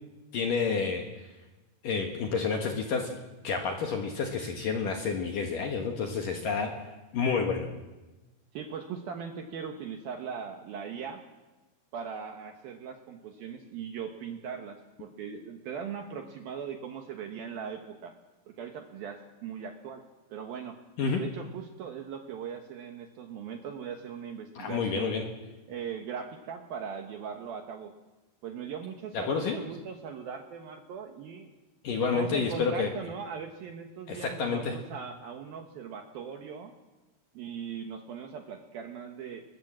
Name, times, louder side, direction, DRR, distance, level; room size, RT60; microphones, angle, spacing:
voice 1, 0.3-1.3 1.8-3.1 3.4-6.7 7.1-7.7 21.0-21.2 24.5-25.2 29.1-29.6 31.8-32.9 34.1-34.8, left 5 dB, 60° left, 3 dB, 2.4 m, -29 dB
voice 2, 8.5-11.2 11.9-18.1 18.5-20.0 20.3-20.8 21.2-25.1 25.7-27.9 28.4-31.5 32.0-36.7 37.3-39.4, right 7 dB, 70° right, 5 dB, 2.4 m, -39 dB
22.0 x 21.0 x 7.5 m, 1.1 s
omnidirectional pair, 5.6 m